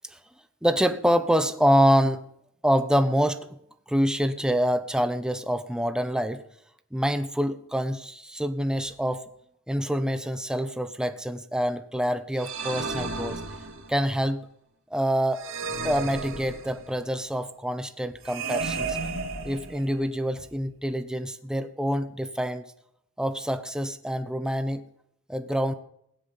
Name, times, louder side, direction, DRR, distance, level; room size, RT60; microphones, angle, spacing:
voice 1, 0.6-2.2 2.6-3.6 3.9-6.4 6.9-9.2 9.7-13.4 13.9-14.5 14.9-15.4 15.8-19.0 19.4-22.6 23.2-24.8 25.3-25.7, equal, 5° right, 9 dB, 0.9 m, -26 dB
sound 1, 12.4-14.1 15.4-17.0 18.2-20.1, right 4 dB, 70° right, 2.4 m, -33 dB
17.0 x 7.3 x 9.9 m, 0.74 s
head